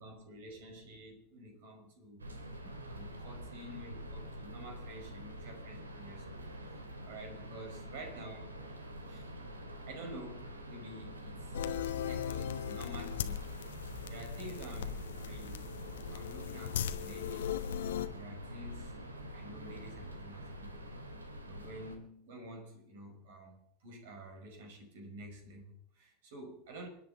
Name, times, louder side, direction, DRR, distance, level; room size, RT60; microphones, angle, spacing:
voice 1, 0.0-2.2 2.6-8.6 9.1-9.3 9.9-13.5 14.1-15.6 15.9-17.5 18.1-19.0 19.3-20.8 21.4-26.9, right 1 dB, 60° right, 5.3 m, -49 dB
sound 1, 2.2-22.0, equal, 85° right, 2.3 m, -46 dB
sound 2, 11.5-18.1, left 10 dB, 65° left, 1.0 m, -38 dB
29.0 x 10.0 x 4.1 m
figure-of-eight pair, 80°, 0 cm